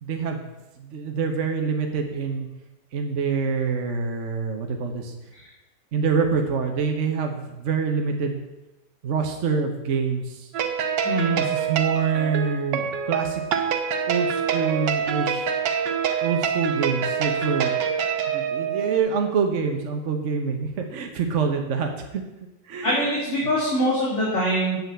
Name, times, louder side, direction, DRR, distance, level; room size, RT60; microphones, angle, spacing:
voice 1, 0.0-0.5 0.8-2.5 2.9-5.1 5.9-8.4 9.0-10.5 11.3-13.7 14.1-15.5 16.2-17.7 18.3-22.2 22.6-23.1, right 5 dB, 50° right, 3 dB, 1.1 m, -26 dB
sound 1, 10.5-19.0, right 7 dB, 80° right, 1.5 m, -25 dB
voice 2, 22.8-24.8, equal, 40° left, -7 dB, 3.0 m, -23 dB
7.8 x 6.8 x 8.1 m, 0.99 s
omnidirectional pair, 1.9 m